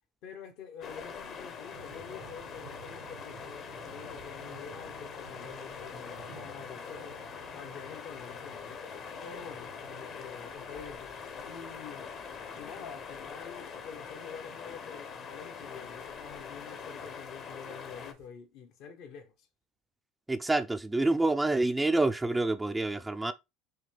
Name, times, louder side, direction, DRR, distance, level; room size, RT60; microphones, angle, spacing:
voice 1, 0.2-7.2 7.5-8.8 9.2-11.1 11.4-12.2 12.6-19.5, left 6 dB, 65° left, 1.0 m, -47 dB
sound 1, 0.8-18.1, left 6 dB, 45° left, 0.9 m, -43 dB
sound 2, 1.7-18.3, right 10 dB, 85° right, 0.8 m, -56 dB
voice 2, 20.3-23.3, right 2 dB, 10° right, 0.4 m, -27 dB
6.2 x 2.3 x 3.4 m
supercardioid pair, 110°, 0 cm